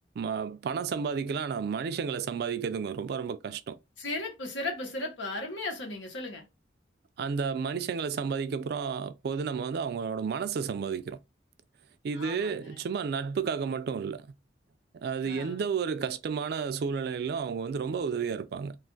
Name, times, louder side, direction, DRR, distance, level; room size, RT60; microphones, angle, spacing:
voice 1, 0.2-3.8 7.2-11.2 12.0-14.3 14.9-18.8, right 6 dB, 60° right, 0.3 m, -32 dB
voice 2, 4.0-6.5 12.1-12.8 15.2-15.6, left 2 dB, 85° left, 1.0 m, -36 dB
2.5 x 2.4 x 3.7 m
head